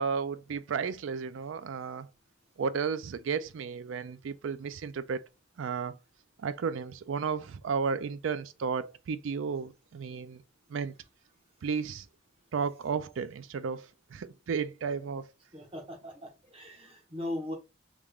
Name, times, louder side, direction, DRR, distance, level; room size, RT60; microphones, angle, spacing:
voice 1, 0.0-2.1 2.6-5.3 5.6-6.0 6.4-10.4 10.7-10.9 11.6-12.1 12.5-15.3, right 5 dB, 80° right, 0.4 m, -33 dB
voice 2, 15.5-17.5, left 1 dB, 30° right, 1.1 m, -39 dB
3.5 x 3.2 x 2.3 m
head